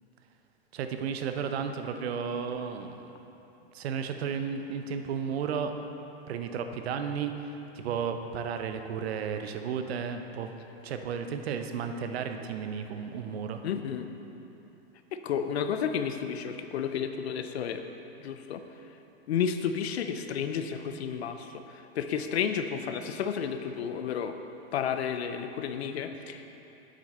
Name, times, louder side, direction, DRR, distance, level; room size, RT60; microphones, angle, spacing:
voice 1, 0.7-3.1 3.7-5.7 6.3-10.5 10.8-13.6, right 6 dB, 75° right, 7 dB, 0.8 m, -33 dB
voice 2, 13.6-14.1 15.1-17.8 18.2-18.6 19.3-24.4 24.7-26.4, left 7 dB, 85° left, 8 dB, 0.7 m, -32 dB
8.2 x 7.9 x 4.3 m, 3.0 s
hypercardioid pair, 120°, 32 cm